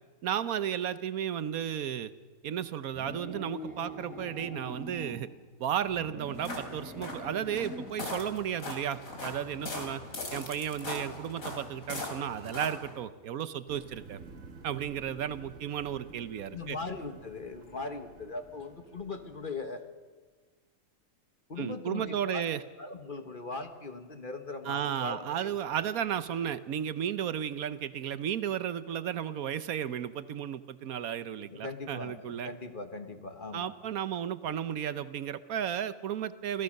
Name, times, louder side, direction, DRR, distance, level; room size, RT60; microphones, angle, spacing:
voice 1, 0.2-2.1 2.4-5.3 5.6-10.0 10.3-14.2 14.6-16.8 21.6-22.6 24.6-32.5 33.5-36.6, right 9 dB, 75° right, 14 dB, 1.2 m, -34 dB
sound 1, 2.9-5.2 5.8-8.0, equal, 5° right, 3.0 m, -43 dB
sound 2, 6.2-13.0, left 2 dB, 65° left, 3.5 m, -40 dB
sound 3, 13.7-19.7, right 3 dB, 60° right, 1.9 m, -52 dB
voice 2, 16.5-19.8 21.5-22.5 22.8-25.5 31.5-33.7, left 3 dB, 35° left, 8 dB, 1.5 m, -39 dB
27.0 x 16.0 x 6.5 m, 1.4 s
omnidirectional pair, 1.6 m